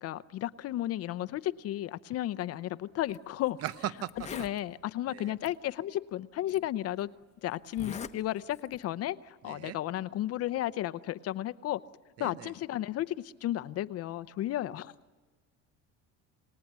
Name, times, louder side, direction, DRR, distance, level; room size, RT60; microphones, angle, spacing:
voice 1, 0.0-3.6 4.3-7.1 7.4-11.8 12.2-14.9, left 13 dB, 50° left, 14 dB, 0.7 m, -33 dB
Zipper (clothing), 3.0-3.2 3.7-3.8 4.0-4.6 5.4-5.5 6.5-6.6 7.7-8.2 8.5-8.8, left 6 dB, 20° left, 1.0 m, -41 dB
voice 2, 3.6-4.1 5.1-5.4 9.4-9.8 12.2-12.5, right 12 dB, 45° right, 16 dB, 0.9 m, -37 dB
28.0 x 19.5 x 9.4 m, 1.4 s
cardioid pair, 140°, 32 cm